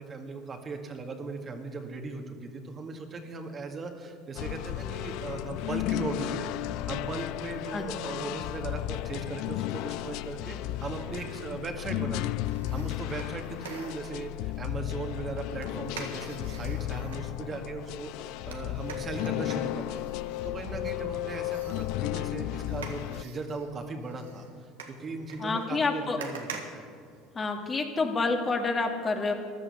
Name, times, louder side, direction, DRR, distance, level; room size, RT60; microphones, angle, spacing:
voice 1, 0.0-6.5 6.9-12.3 12.7-20.0 20.4-26.9, right 3 dB, 35° right, 4 dB, 1.9 m, -38 dB
sound 1, 4.4-23.2, left 16 dB, 65° left, 0.3 m, -34 dB
voice 2, 7.7-8.1 25.4-26.2 27.3-29.3, left 3 dB, 30° left, 3 dB, 2.1 m, -28 dB
sound 2, 12.4-14.3 15.6-17.3 18.5-21.0 21.5-27.7 28.1-28.2, right 5 dB, 85° right, 1.6 m, -46 dB
15.0 x 11.0 x 7.0 m, 2.3 s
hypercardioid pair, 75°, 0 cm